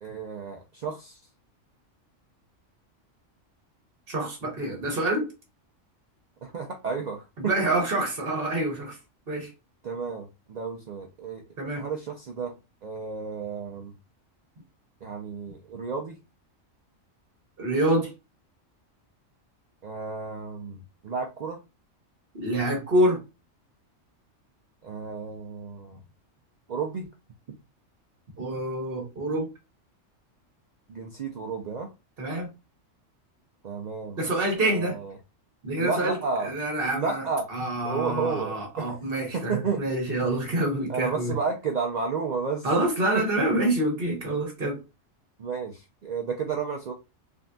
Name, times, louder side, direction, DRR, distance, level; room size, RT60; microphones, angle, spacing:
voice 1, 0.0-1.2 6.4-7.5 9.8-11.4 11.8-12.5 12.8-13.9 15.0-16.2 19.8-21.6 24.8-26.0 26.7-27.0 30.9-31.9 33.6-34.2 34.6-35.2 35.8-36.5 36.9-37.5 37.8-38.9 39.3-39.8 40.9-42.7 43.1-43.2 45.4-46.9, right 5 dB, 75° right, 0.4 m, -32 dB
voice 2, 4.1-5.3 7.4-9.0 9.3-9.5 11.6-11.8 17.6-18.1 22.3-23.2 28.4-29.5 32.2-32.5 34.2-35.0 35.6-36.2 36.4-41.3 42.6-44.8, right 1 dB, 50° right, 1.0 m, -26 dB
3.6 x 2.5 x 2.2 m
omnidirectional pair, 1.3 m